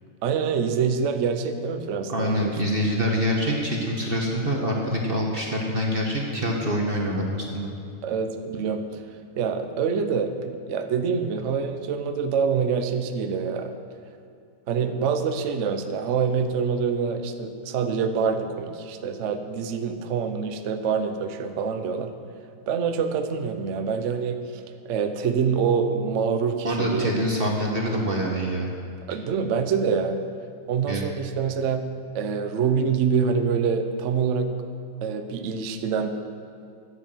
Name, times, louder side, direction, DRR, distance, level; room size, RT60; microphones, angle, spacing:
voice 1, 0.2-2.5 8.0-9.0 9.4-13.7 14.7-22.1 22.7-27.1 29.1-30.2 30.7-31.8 32.1-34.5 35.0-36.1, right 6 dB, 90° right, 7 dB, 0.6 m, -26 dB
voice 2, 2.1-7.7 26.6-28.7 30.9-31.0, equal, 35° right, -1 dB, 1.0 m, -25 dB
10.5 x 8.1 x 7.4 m, 2.4 s
omnidirectional pair, 2.3 m